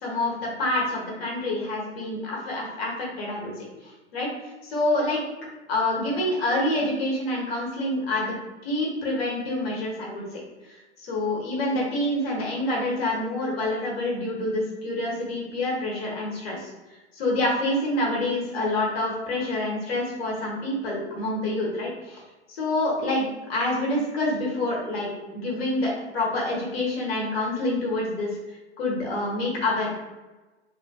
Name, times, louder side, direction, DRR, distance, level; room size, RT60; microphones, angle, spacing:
voice 1, 0.0-3.5 3.8-4.3 4.6-5.2 5.7-8.3 8.6-10.4 11.0-16.6 17.1-22.2 22.6-28.3 28.8-29.9, left 1 dB, 60° left, -3 dB, 1.0 m, -27 dB
3.1 x 2.4 x 2.3 m, 1.2 s
figure-of-eight pair, 105°, 35 cm